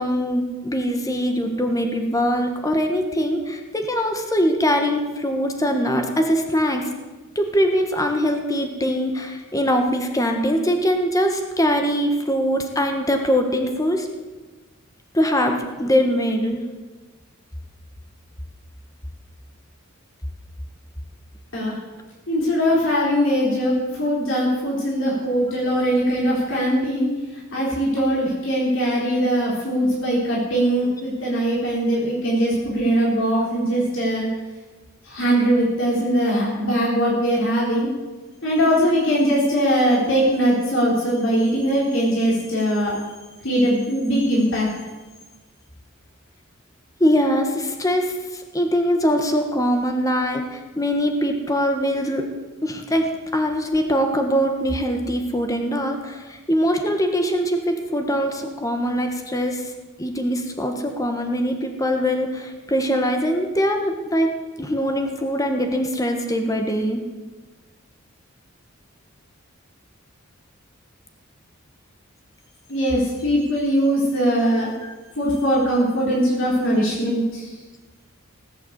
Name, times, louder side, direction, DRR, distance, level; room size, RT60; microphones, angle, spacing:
voice 1, 0.0-6.9 7.3-14.1 15.1-16.6 47.0-52.3 52.6-59.7 60.0-67.0 74.8-74.9, equal, 15° left, 4 dB, 1.5 m, -22 dB
voice 2, 22.3-27.1 27.5-34.3 35.1-37.9 38.4-43.0 43.4-44.7 72.7-74.7 75.2-77.4, equal, 65° left, -5 dB, 4.1 m, -21 dB
18.5 x 8.4 x 8.1 m, 1.2 s
head